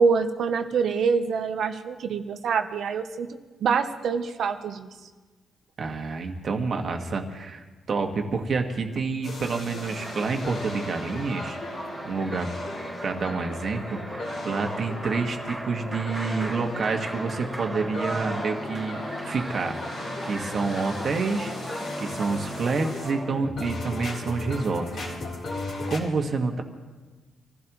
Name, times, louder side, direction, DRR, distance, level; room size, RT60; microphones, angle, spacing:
voice 1, 0.0-3.3 3.6-4.9, right 5 dB, 60° right, 7 dB, 0.9 m, -25 dB
voice 2, 5.8-11.6 12.0-12.5 13.0-19.0 19.2-19.7 20.2-21.5 22.0-25.1 25.9-26.6, right 4 dB, 45° right, 3 dB, 1.7 m, -28 dB
sound 1, 9.2-26.0, left 2 dB, 60° left, 3.9 m, -36 dB
sound 2, 9.8-23.5, right 1 dB, 10° right, 3.2 m, -38 dB
26.5 x 15.5 x 3.1 m, 1.3 s
cardioid pair, 145°, 0 cm